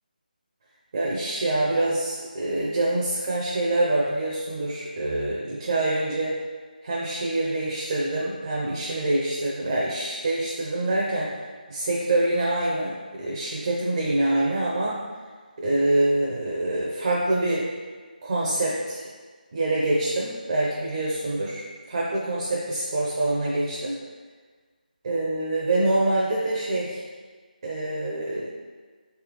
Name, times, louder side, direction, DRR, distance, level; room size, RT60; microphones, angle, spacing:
voice 1, 0.9-6.4 6.8-11.4 11.7-15.0 15.6-17.7 18.2-19.1 19.5-24.0 25.0-27.0 27.6-28.5, right 1 dB, 40° right, -4 dB, 0.5 m, -25 dB
3.4 x 3.2 x 3.0 m, 1.5 s
figure-of-eight pair, 155°, 5 cm